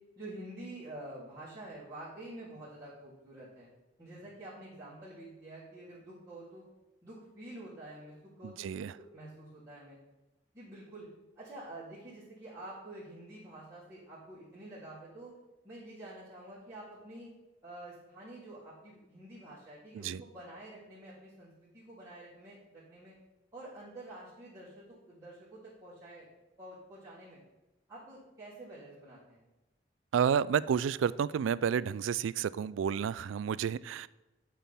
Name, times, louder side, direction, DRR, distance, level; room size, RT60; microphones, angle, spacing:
voice 1, 0.2-3.7 4.0-6.6 7.0-10.0 10.5-11.1 11.3-15.3 15.6-17.3 17.6-23.1 23.5-26.3 26.6-27.4 27.9-29.4, right 1 dB, 15° right, -14 dB, 3.2 m, -48 dB
voice 2, 8.4-9.0 19.9-20.2 30.1-34.1, right 7 dB, 90° right, 19 dB, 0.3 m, -30 dB
11.5 x 5.9 x 3.5 m, 1.1 s
head